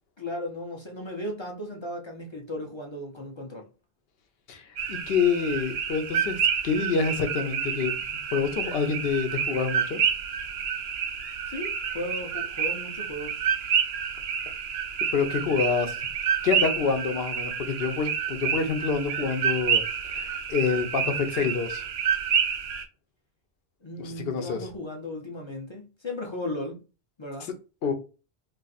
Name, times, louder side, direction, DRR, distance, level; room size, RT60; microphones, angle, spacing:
voice 1, 0.2-3.7 11.5-13.4 23.8-26.8 27.2-27.5, left 1 dB, 35° left, 0.5 m, -36 dB
voice 2, 4.5-8.0 8.3-10.0 15.1-16.0 16.4-19.8 20.1-21.8 24.0-24.7 27.8-27.9, left 5 dB, 70° left, 0.9 m, -27 dB
sound 1, 4.8-22.8, right 7 dB, 75° right, 0.8 m, -29 dB
2.5 x 2.5 x 3.9 m
omnidirectional pair, 1.1 m